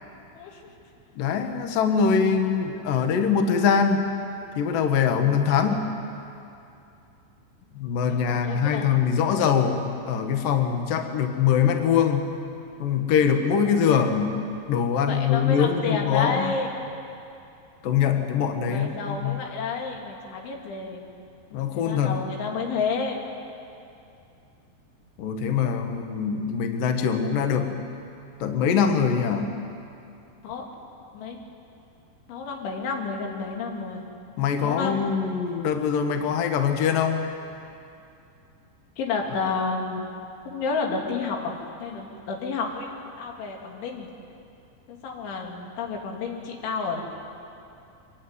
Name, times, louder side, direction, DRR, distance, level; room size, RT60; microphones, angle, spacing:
voice 1, 1.2-4.0 4.6-5.9 7.8-12.3 12.8-16.5 17.8-19.5 21.5-22.2 25.2-27.8 28.4-29.5 34.4-37.2, left 7 dB, 60° left, 5 dB, 2.7 m, -23 dB
voice 2, 8.3-8.9 15.1-16.7 18.7-21.0 21.7-23.2 30.4-30.6 31.1-31.4 32.3-34.1 34.6-35.0 39.0-40.1 40.5-42.9 43.2-44.1 44.9-47.0, left 4 dB, 85° left, 1 dB, 5.1 m, -30 dB
25.0 x 21.0 x 9.7 m, 2.6 s
omnidirectional pair, 5.2 m